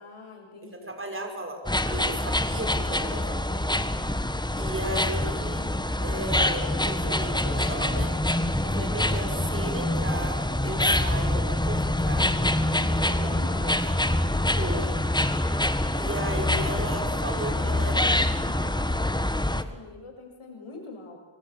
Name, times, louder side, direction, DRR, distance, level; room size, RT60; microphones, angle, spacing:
voice 1, 0.0-0.9 12.6-14.2 17.3-17.8 18.4-21.2, left 3 dB, 85° left, 2 dB, 7.1 m, -43 dB
voice 2, 0.6-1.6 1.8-3.5 4.6-5.7 6.0-8.2 8.6-12.3 14.6-15.1 16.0-18.0, right 1 dB, 25° right, 3 dB, 5.9 m, -35 dB
sound 1, 1.7-19.6, left 1 dB, 10° left, 1.6 m, -25 dB
sound 2, 12.8-18.0, left 3 dB, 40° left, 3.4 m, -49 dB
26.0 x 24.0 x 8.8 m, 1.2 s
wide cardioid pair, 80°, 49 cm